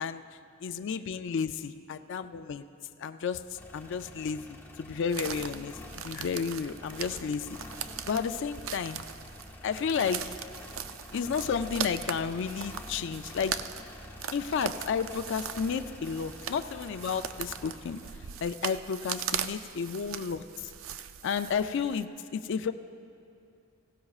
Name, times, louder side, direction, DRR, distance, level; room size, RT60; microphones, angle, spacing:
voice 1, 0.0-2.6 3.0-9.0 9.6-10.4 11.1-13.6 14.3-20.7 21.2-22.7, left 6 dB, 65° left, 10 dB, 0.4 m, -32 dB
sound 1, 3.5-18.6, left 1 dB, 10° left, 1.0 m, -48 dB
sound 2, 5.1-22.0, right 9 dB, 70° right, 0.4 m, -40 dB
18.0 x 16.0 x 2.4 m, 2.6 s
head